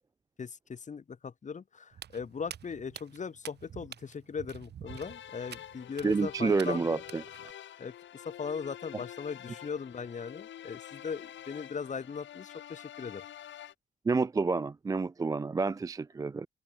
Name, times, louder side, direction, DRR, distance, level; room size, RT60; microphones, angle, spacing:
voice 1, 0.4-7.0 7.8-13.2, left 6 dB, 40° left, 2.1 m, -39 dB
Walk footsteps, 1.9-7.5, right 9 dB, 55° right, 1.8 m, -48 dB
sound 1, 4.9-13.7, left 11 dB, 70° left, 3.3 m, -47 dB
voice 2, 6.0-7.2 14.1-16.5, right 4 dB, 15° right, 0.3 m, -29 dB
open air
cardioid pair, 90°, 20 cm